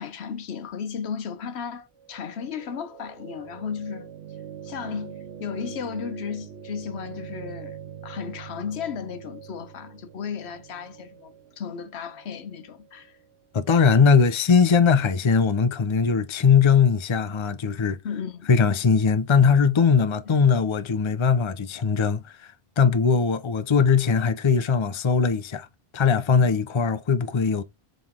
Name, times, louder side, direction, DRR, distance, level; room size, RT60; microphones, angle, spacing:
voice 1, 0.0-4.1 4.6-13.2 18.0-18.5 20.2-20.5, left 7 dB, 85° left, 1.1 m, -35 dB
sound 1, 2.0-14.0, right 8 dB, 85° right, 1.1 m, -43 dB
voice 2, 13.5-18.0 18.5-25.7 25.9-27.6, left 5 dB, 35° left, 0.6 m, -20 dB
6.6 x 3.9 x 3.7 m
omnidirectional pair, 1.1 m